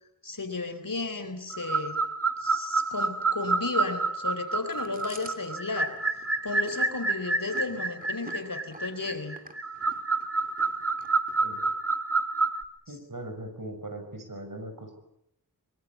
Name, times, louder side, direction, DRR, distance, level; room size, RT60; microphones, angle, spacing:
voice 1, 0.2-2.0 2.4-5.9 6.4-9.4, left 3 dB, 60° left, 9 dB, 3.9 m, -34 dB
sound 1, 1.5-12.6, right 3 dB, 40° right, 1.5 m, -28 dB
Chewing mastication, 4.7-11.8, right 1 dB, 20° right, 2.9 m, -49 dB
voice 2, 12.9-15.0, right 1 dB, 55° right, 7 dB, 5.9 m, -40 dB
23.5 x 23.5 x 8.5 m, 0.77 s
wide cardioid pair, 60°, 38 cm